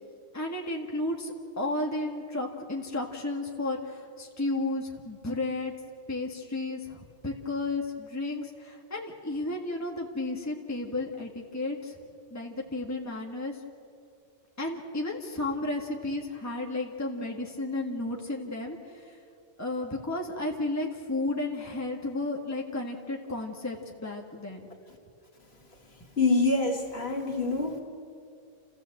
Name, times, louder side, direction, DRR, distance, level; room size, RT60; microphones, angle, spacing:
voice 1, 0.3-5.7 6.1-11.9 12.3-13.6 14.6-19.2 19.6-24.7, left 2 dB, 15° left, 0 dB, 1.6 m, -33 dB
voice 2, 26.2-27.8, left 3 dB, 55° left, 2 dB, 2.4 m, -25 dB
29.0 x 14.5 x 7.8 m, 2.4 s
omnidirectional pair, 1.3 m